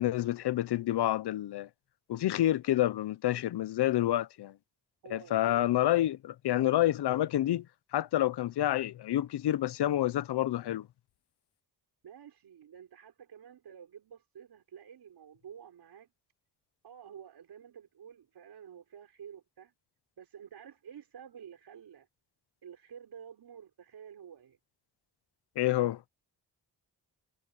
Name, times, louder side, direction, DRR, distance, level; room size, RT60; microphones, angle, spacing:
voice 1, 0.0-1.7 2.1-4.5 5.1-7.7 7.9-10.9 25.6-26.0, left 13 dB, 70° left, 0.7 m, -28 dB
voice 2, 5.0-5.6 12.0-16.1 16.8-19.7 20.2-22.1 22.6-24.6, right 8 dB, 70° right, 5.0 m, -50 dB
wide cardioid pair, 165°, 41 cm